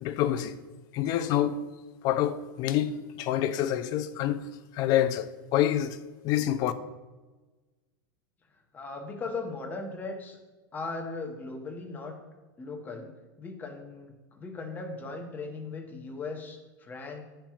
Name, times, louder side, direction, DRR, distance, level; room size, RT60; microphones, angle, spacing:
voice 1, 0.0-0.6 0.9-1.6 2.0-4.4 4.7-6.0 6.2-6.7, left 11 dB, 35° left, 0.4 m, -27 dB
voice 2, 8.5-10.4 10.7-12.2 12.6-13.1 13.4-17.2, left 3 dB, 15° left, 0.8 m, -38 dB
10.0 x 4.4 x 2.4 m
supercardioid pair, 150°, 12 cm